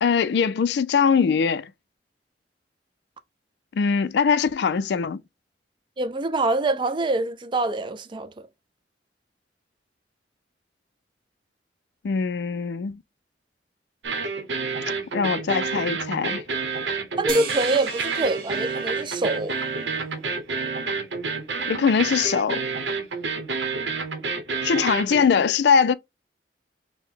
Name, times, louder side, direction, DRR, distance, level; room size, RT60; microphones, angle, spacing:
voice 1, 0.0-1.7 3.7-5.2 12.0-13.0 15.1-16.4 21.7-22.6 24.6-25.9, left 6 dB, 65° left, 0.3 m, -22 dB
voice 2, 6.0-8.5 17.2-19.6, right 2 dB, 25° right, 0.4 m, -25 dB
sound 1, 14.0-25.2, right 4 dB, 85° right, 0.9 m, -29 dB
sound 2, 17.3-20.0, right 4 dB, 55° right, 1.1 m, -36 dB
4.4 x 2.1 x 3.7 m
head